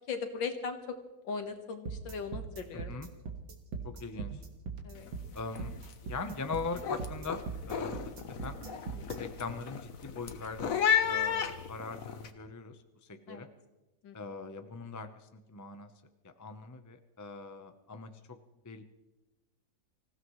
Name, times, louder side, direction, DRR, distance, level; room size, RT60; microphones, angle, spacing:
voice 1, 0.1-1.0 1.2-2.9 4.8-5.1 9.0-9.3 13.3-13.5 14.0-14.2, left 5 dB, 70° left, 6 dB, 2.2 m, -38 dB
sound 1, 1.9-9.2, right 5 dB, 75° right, 2.3 m, -40 dB
voice 2, 3.8-4.4 5.3-5.7 6.0-7.4 7.7-8.0 8.4-8.6 9.2-12.8 13.1-13.5 14.1-15.1 15.5-15.9 16.2-18.4 18.6-18.8, left 4 dB, 30° left, 7 dB, 0.3 m, -41 dB
sound 2, 5.0-5.2 5.5-5.9 6.3-12.3, left 8 dB, 50° left, 1.2 m, -33 dB
25.5 x 16.0 x 3.2 m, 1.0 s
omnidirectional pair, 2.1 m